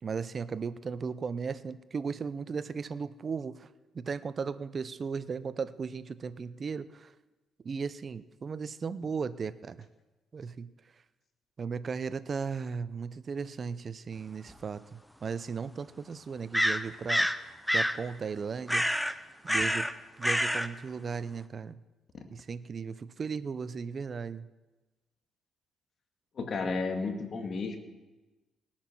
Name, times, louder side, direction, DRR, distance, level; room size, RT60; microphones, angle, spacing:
voice 1, 0.0-3.7 3.9-7.1 7.6-9.9 10.3-10.7 11.6-17.3 17.7-19.0 19.4-19.9 20.2-21.8 22.3-24.5, right 5 dB, 40° right, 15 dB, 0.6 m, -36 dB
sound 1, 14.5-14.6 16.5-17.4 17.7-18.0 18.7-19.1 19.5-19.9 20.2-20.7, equal, ahead, 0.7 m, -27 dB
voice 2, 26.4-27.8, left 4 dB, 50° left, 4 dB, 2.1 m, -32 dB
18.5 x 8.6 x 6.0 m, 1.1 s
cardioid pair, 90°, 0 cm